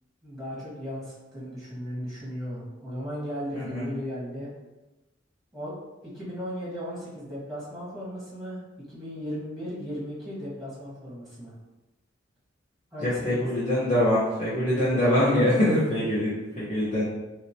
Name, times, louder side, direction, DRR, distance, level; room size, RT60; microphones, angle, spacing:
voice 1, 0.2-4.5 5.5-5.8 6.1-8.6 8.9-11.5 12.9-13.4 14.7-15.7, equal, ahead, -8 dB, 1.2 m, -36 dB
voice 2, 3.5-3.8 13.0-17.0, left 1 dB, 40° left, -11 dB, 1.0 m, -24 dB
3.1 x 2.9 x 2.8 m, 1.1 s
head